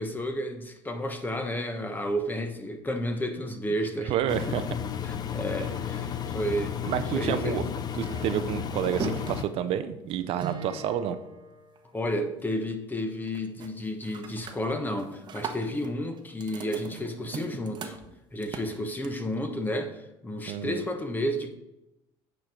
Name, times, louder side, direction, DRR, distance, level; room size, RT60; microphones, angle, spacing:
voice 1, 0.0-4.1 4.4-4.5 5.0-6.8 7.1-7.6 11.9-18.0 18.3-21.5, equal, 15° left, 6 dB, 1.1 m, -31 dB
voice 2, 4.1-4.7 6.9-7.6 7.9-11.2 20.5-20.8, right 10 dB, 65° right, 11 dB, 0.6 m, -29 dB
Engine, 4.3-9.4, left 8 dB, 40° left, 0.6 m, -33 dB
sound 1, 7.7-12.2 12.5-13.0 13.3-13.7 14.0-19.3, right 5 dB, 45° right, 1.0 m, -40 dB
8.8 x 4.6 x 5.0 m, 0.90 s
supercardioid pair, 100°, 11 cm